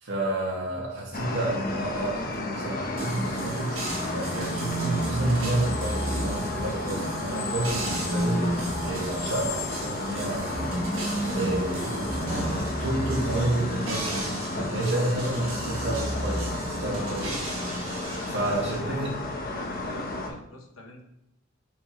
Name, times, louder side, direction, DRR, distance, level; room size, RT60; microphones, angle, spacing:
voice 1, 0.0-3.8 4.1-10.8 11.3-17.5 18.3-19.1, right 1 dB, 60° right, -3 dB, 2.0 m, -30 dB
sound 1, 1.1-20.3, left 2 dB, 45° left, 1.0 m, -33 dB
sound 2, 3.0-18.8, right 2 dB, 85° right, 1.5 m, -38 dB
sound 3, 3.7-7.0 7.7-14.3 15.3-17.2, right 1 dB, 10° right, 1.0 m, -33 dB
voice 2, 18.0-19.1 19.5-21.0, left 1 dB, 75° left, 2 dB, 1.2 m, -45 dB
7.2 x 4.4 x 3.2 m, 0.79 s
head